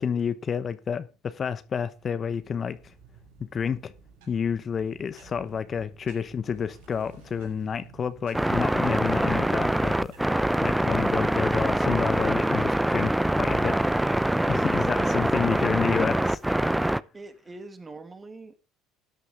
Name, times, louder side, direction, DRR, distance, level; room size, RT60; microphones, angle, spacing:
voice 1, 0.0-2.9 3.4-3.9 4.3-10.1 10.6-13.8 14.5-16.8, left 7 dB, 40° left, 1.0 m, -29 dB
sound 1, 1.6-16.0, right 5 dB, 85° right, 5.5 m, -52 dB
sound 2, 8.3-17.0, right 1 dB, 5° right, 0.6 m, -24 dB
voice 2, 15.0-15.3 17.1-18.5, right 3 dB, 25° right, 2.5 m, -41 dB
13.0 x 9.8 x 3.6 m
supercardioid pair, 80°, 0 cm